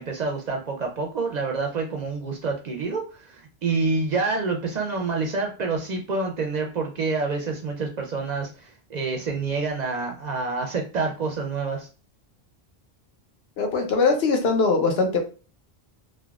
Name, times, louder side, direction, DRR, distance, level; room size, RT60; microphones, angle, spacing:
voice 1, 0.0-11.9, right 4 dB, 55° right, 1 dB, 0.5 m, -27 dB
voice 2, 13.6-15.2, left 4 dB, 75° left, 4 dB, 0.9 m, -21 dB
3.3 x 2.2 x 2.3 m, 0.34 s
omnidirectional pair, 1.1 m